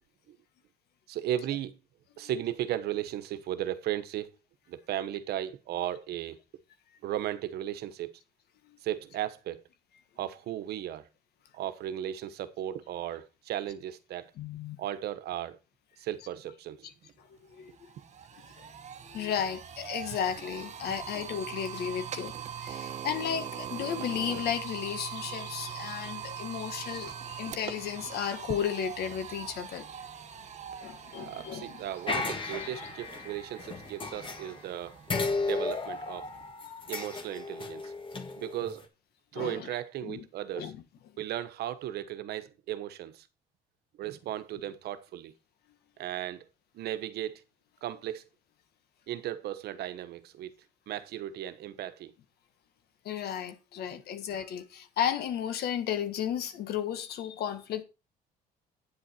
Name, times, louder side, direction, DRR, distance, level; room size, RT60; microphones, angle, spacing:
voice 1, 1.1-1.8 2.2-4.3 4.7-6.4 7.0-8.2 8.8-9.6 10.2-11.1 11.5-14.3 14.8-15.6 16.0-16.9 18.0-18.1 20.9-21.3 22.4-22.5 31.3-35.0 35.4-36.3 36.9-37.9 38.4-38.8 39.3-40.7 41.2-43.3 44.0-45.3 46.0-46.4 46.7-47.4 47.8-48.2 49.1-50.5 50.9-52.1, right 12 dB, 70° right, 1.2 m, -36 dB
voice 2, 14.4-14.8 16.8-16.9 17.2-17.7 18.6-18.7 19.0-29.9 30.8-31.8 39.3-39.7 40.0-40.2 40.5-40.8 53.0-57.8, left 9 dB, 70° left, 1.5 m, -34 dB
sound 1, 17.1-17.2 17.5-36.5, right 8 dB, 45° right, 1.2 m, -42 dB
sound 2, 24.3-32.9, left 5 dB, 55° left, 5.4 m, -54 dB
sound 3, 32.1-34.7 35.1-38.8, left 3 dB, 30° left, 1.8 m, -35 dB
9.3 x 7.7 x 4.3 m
cardioid pair, 110°, 17 cm